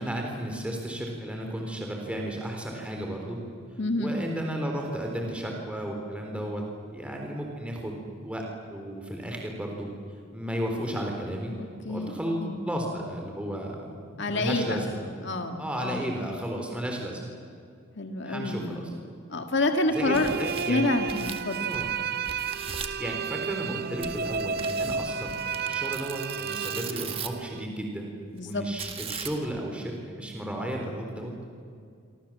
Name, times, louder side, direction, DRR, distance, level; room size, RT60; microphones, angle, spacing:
voice 1, 0.0-3.4 4.0-9.9 10.3-11.5 11.9-15.0 15.6-17.2 18.2-18.9 19.9-20.9 21.6-21.9 22.8-25.4 25.6-28.1 28.4-31.4, right 1 dB, 5° right, 1 dB, 3.9 m, -33 dB
voice 2, 3.8-4.2 11.6-12.6 14.2-14.8 15.2-16.1 18.0-19.0 19.3-20.3 20.7-21.6 28.3-28.7, left 2 dB, 55° left, 5 dB, 1.9 m, -28 dB
sound 1, 19.9-27.7, right 6 dB, 45° right, 0.7 m, -32 dB
Tearing, 20.0-22.0 22.2-23.0 24.0-27.5 28.8-29.6, right 6 dB, 25° right, 1.7 m, -39 dB
27.0 x 26.0 x 7.5 m, 2.3 s
head